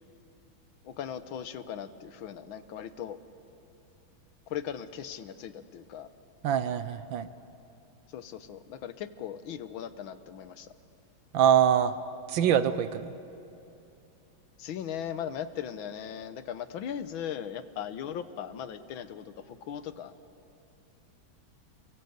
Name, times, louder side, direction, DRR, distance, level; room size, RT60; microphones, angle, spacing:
voice 1, 0.8-3.2 4.5-6.1 8.1-10.7 14.6-20.1, left 9 dB, 90° left, 12 dB, 1.8 m, -38 dB
voice 2, 6.4-7.3 11.3-11.9 12.3-13.1, right 9 dB, 75° right, 12 dB, 1.6 m, -24 dB
29.0 x 22.5 x 8.0 m, 2.8 s
omnidirectional pair, 2.1 m